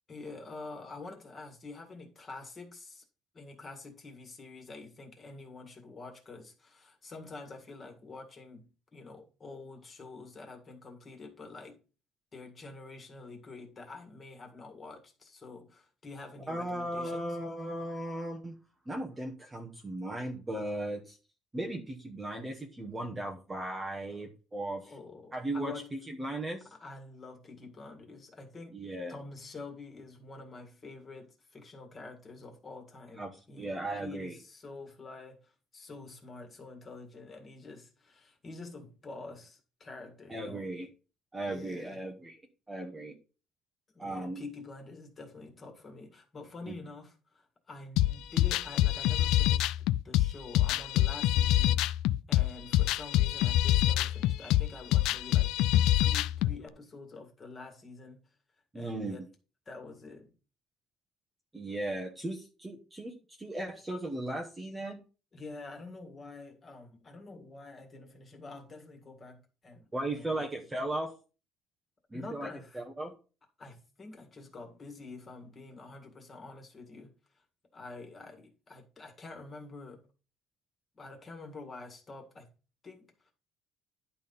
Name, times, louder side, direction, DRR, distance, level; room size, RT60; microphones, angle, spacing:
voice 1, 0.1-3.0 3.3-11.8 12.3-17.4 24.1-24.2 24.8-25.9 26.7-28.8 29.1-40.7 41.4-42.0 43.9-49.7 50.0-52.0 52.3-55.6 56.0-58.2 58.7-59.3 59.7-60.3 65.3-70.5 72.1-72.8 73.6-77.4 77.7-80.1 80.9-82.5 82.8-83.3, left 3 dB, 20° left, 1.9 m, -47 dB
voice 2, 16.5-18.6 18.9-21.2 21.5-24.9 25.3-26.7 28.7-29.1 33.2-34.4 40.3-40.9 41.3-42.4 42.7-43.2 44.0-44.4 46.7-46.8 58.7-59.2 61.5-65.0 69.9-71.1 72.1-72.5 72.7-73.1, right 1 dB, 10° right, 1.0 m, -37 dB
sound 1, 48.0-56.6, left 14 dB, 75° left, 0.4 m, -26 dB
11.0 x 4.2 x 5.4 m
cardioid pair, 175°, 0 cm